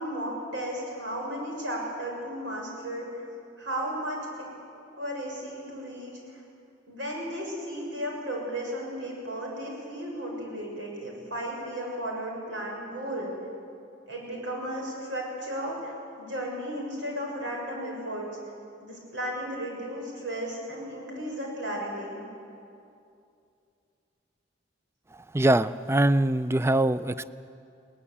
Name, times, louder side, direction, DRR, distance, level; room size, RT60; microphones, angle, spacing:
voice 1, 0.0-3.2 3.6-4.3 5.0-6.4 6.9-13.3 14.1-18.3 18.8-22.2, equal, 90° right, -1 dB, 6.9 m, -34 dB
voice 2, 25.1-27.3, right 1 dB, 15° right, 14 dB, 0.4 m, -23 dB
21.0 x 19.0 x 8.6 m, 2.5 s
head